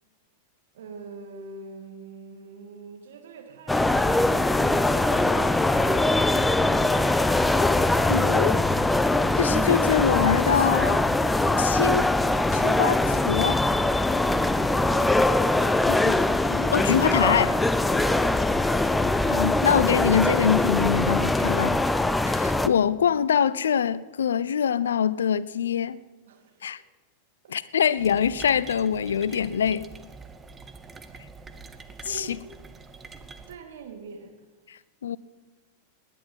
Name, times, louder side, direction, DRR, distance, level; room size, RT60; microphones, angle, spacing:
voice 1, 0.7-7.3 14.2-15.2 26.3-26.8 27.4-27.5 32.0-32.4 33.2-34.3, right 4 dB, 60° right, 2.2 m, -43 dB
sound 1, 3.7-22.7, left 2 dB, 5° left, 0.5 m, -22 dB
voice 2, 8.1-8.6 9.4-11.0 11.6-12.1 12.5-13.6 15.9-16.2 16.5-17.6 19.3-21.8 22.3-26.0 26.6-26.8 27.5-29.9 32.1-32.4 34.7-35.2, left 8 dB, 65° left, 0.4 m, -24 dB
sound 2, 28.0-33.6, right 4 dB, 15° right, 0.9 m, -45 dB
19.0 x 10.0 x 5.5 m
figure-of-eight pair, 90°, 0 cm